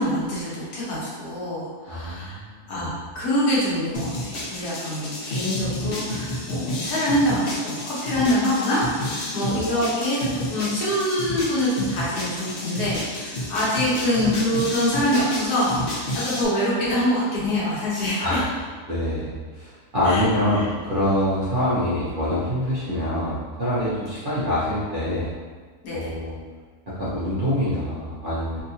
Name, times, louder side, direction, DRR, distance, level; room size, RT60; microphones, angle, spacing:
voice 1, 0.0-2.4 2.7-18.4 20.0-20.2 20.5-20.6 25.8-26.1, left 1 dB, 80° left, -7 dB, 1.5 m, -25 dB
voice 2, 1.9-2.9 9.5-9.6 18.2-18.5 18.8-25.3 25.9-26.4 27.0-28.6, left 1 dB, 50° right, -11 dB, 0.6 m, -25 dB
sound 1, 3.9-16.5, left 1 dB, 65° left, 0.5 m, -31 dB
3.1 x 2.8 x 2.7 m, 1.5 s
omnidirectional pair, 1.7 m